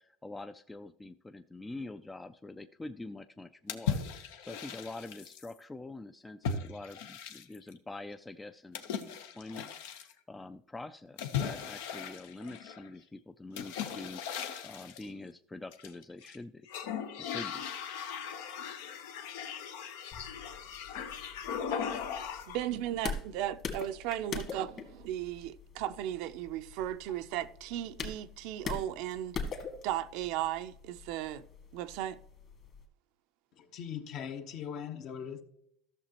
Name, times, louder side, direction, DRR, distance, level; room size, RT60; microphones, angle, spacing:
voice 1, 0.0-16.7 17.2-17.6, left 2 dB, 10° left, 0.3 m, -45 dB
sound 1, 3.7-5.5 6.4-7.7 8.7-10.1 11.2-12.9 13.6-15.1 15.7-16.4 16.7-22.7, left 7 dB, 80° left, 0.9 m, -38 dB
sound 2, 20.1-32.8, left 4 dB, 40° left, 1.9 m, -44 dB
voice 2, 22.5-29.4 29.8-31.4 31.7-32.2, right 12 dB, 70° right, 0.5 m, -36 dB
voice 3, 33.6-35.4, left 8 dB, 55° left, 1.1 m, -40 dB
14.0 x 6.6 x 2.9 m
supercardioid pair, 115°, 0 cm